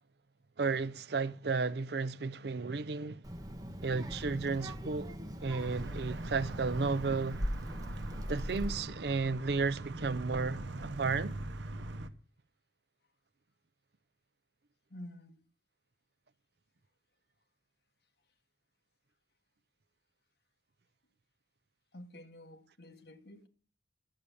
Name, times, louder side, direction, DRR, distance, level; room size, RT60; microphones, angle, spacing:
voice 1, 0.6-3.2 3.8-5.1 5.4-7.4 8.3-11.3, right 4 dB, 65° right, 0.6 m, -33 dB
Child speech kid speaking, 3.2-8.8, equal, 20° right, 1.3 m, -40 dB
sound 1, 5.6-12.1, right 2 dB, 85° right, 0.9 m, -42 dB
voice 2, 14.9-15.4 21.9-23.5, left 1 dB, 60° left, 1.3 m, -50 dB
11.5 x 7.3 x 6.8 m
head